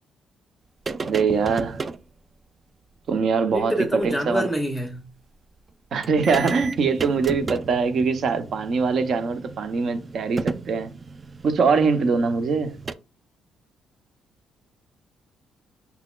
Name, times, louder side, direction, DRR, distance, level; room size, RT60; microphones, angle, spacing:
sound 1, 0.9-2.0 3.6-3.7 4.0-4.1 5.7-5.8 6.0-12.9, right 4 dB, 35° right, 0.3 m, -34 dB
voice 1, 1.0-1.9 3.1-4.5 5.9-10.9 11.4-12.8, right 5 dB, 60° right, 0.7 m, -23 dB
voice 2, 3.5-5.0 12.0-12.1, equal, ahead, 0.7 m, -26 dB
5.7 x 4.0 x 2.3 m
cardioid pair, 85°, 0 cm